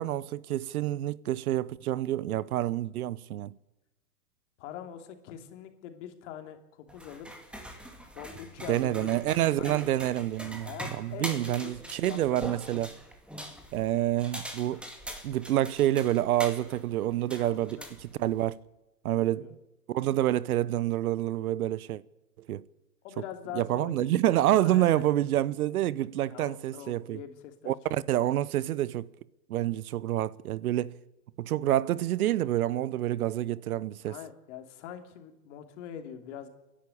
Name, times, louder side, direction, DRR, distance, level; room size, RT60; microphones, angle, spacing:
voice 1, 0.0-3.5 8.7-10.7 11.0-13.0 13.7-14.8 15.2-18.5 19.0-19.5 19.9-22.0 22.5-22.6 23.5-27.2 27.7-29.1 29.5-30.9 31.4-34.2, right 13 dB, 75° right, 0.8 m, -28 dB
voice 2, 4.6-7.3 8.2-9.1 9.6-9.8 10.6-12.5 17.3-17.9 19.1-19.5 23.0-25.2 26.3-27.7 34.0-36.5, left 9 dB, 50° left, 3.0 m, -44 dB
sound 1, 6.9-18.5, equal, ahead, 2.1 m, -43 dB
29.0 x 11.5 x 8.4 m
hypercardioid pair, 140°, 45 cm